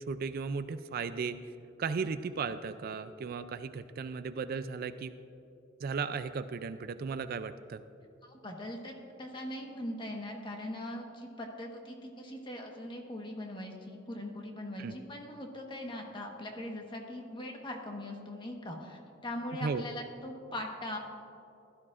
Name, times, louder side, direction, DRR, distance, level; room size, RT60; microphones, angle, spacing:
voice 1, 0.1-1.4 1.8-5.1 5.8-7.8 14.8-15.0 19.6-19.8, right 5 dB, 50° right, 11 dB, 0.3 m, -35 dB
voice 2, 8.2-8.9 9.2-21.0, left 1 dB, 25° left, 2 dB, 1.3 m, -41 dB
16.0 x 12.5 x 2.5 m, 2.8 s
head